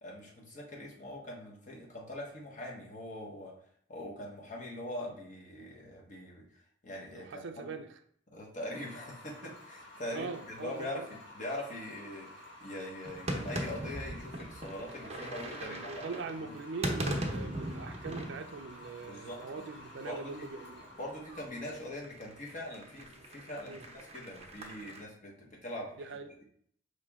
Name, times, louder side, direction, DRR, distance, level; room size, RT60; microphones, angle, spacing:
voice 1, 0.0-3.5 3.9-6.4 6.8-7.7 8.3-16.5 19.0-19.7 20.0-20.5 21.0-26.4, left 1 dB, 40° left, -2 dB, 1.1 m, -42 dB
voice 2, 7.1-7.9 10.1-11.1 15.6-20.8 23.7-23.8 26.0-26.3, right 4 dB, 65° right, 8 dB, 0.4 m, -42 dB
sound 1, 8.7-23.7, left 1 dB, 75° left, 1.4 m, -52 dB
sound 2, 13.0-19.5 19.7-25.0, right 1 dB, 35° right, 0.7 m, -40 dB
4.9 x 2.9 x 3.5 m, 0.64 s
head